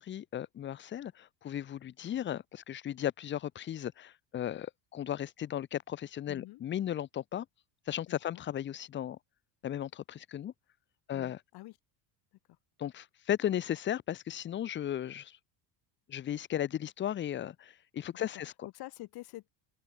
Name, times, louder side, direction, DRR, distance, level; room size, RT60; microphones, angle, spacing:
voice 1, 0.0-7.5 7.9-9.2 9.6-10.5 11.1-11.4 12.8-15.4 16.1-18.7, left 11 dB, 25° left, 0.7 m, -36 dB
voice 2, 6.3-6.6 8.1-8.4 11.1-11.7 18.1-18.3 18.6-19.5, left 18 dB, 55° left, 2.3 m, -47 dB
open air
cardioid pair, 155°, 46 cm